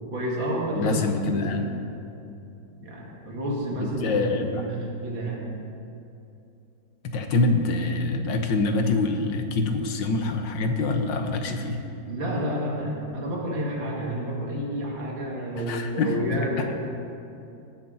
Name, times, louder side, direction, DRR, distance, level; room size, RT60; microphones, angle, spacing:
voice 1, 0.1-1.0 1.3-1.5 2.8-5.4 12.1-16.8, equal, 85° right, -2 dB, 2.9 m, -30 dB
voice 2, 0.7-1.7 3.7-4.6 7.0-11.8 15.6-16.7, left 3 dB, 75° left, 5 dB, 1.7 m, -25 dB
18.5 x 11.0 x 4.0 m, 2.7 s
omnidirectional pair, 2.0 m